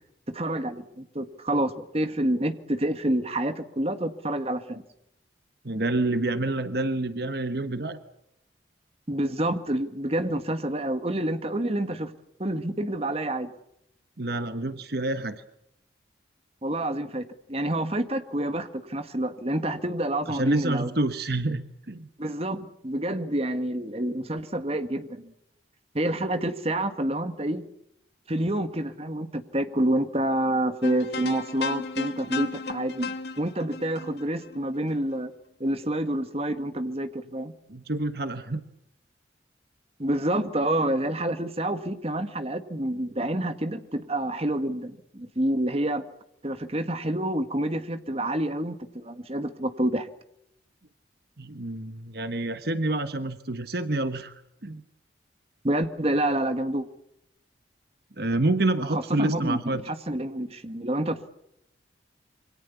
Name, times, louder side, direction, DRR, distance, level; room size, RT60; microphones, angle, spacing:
voice 1, 0.3-4.8 9.1-12.1 12.4-13.5 16.6-20.9 22.2-25.3 25.9-27.6 28.3-35.3 35.6-37.5 40.0-46.1 46.4-50.1 55.6-56.9 58.9-59.6 59.9-61.2, right 1 dB, 35° right, 9 dB, 1.6 m, -28 dB
voice 2, 5.6-8.0 14.2-15.4 20.3-22.1 37.7-38.6 51.4-54.8 58.2-59.8, right 2 dB, 55° right, 10 dB, 1.2 m, -28 dB
sound 1, 30.8-35.1, left 3 dB, 60° left, 2.1 m, -35 dB
27.0 x 24.0 x 7.1 m, 0.78 s
head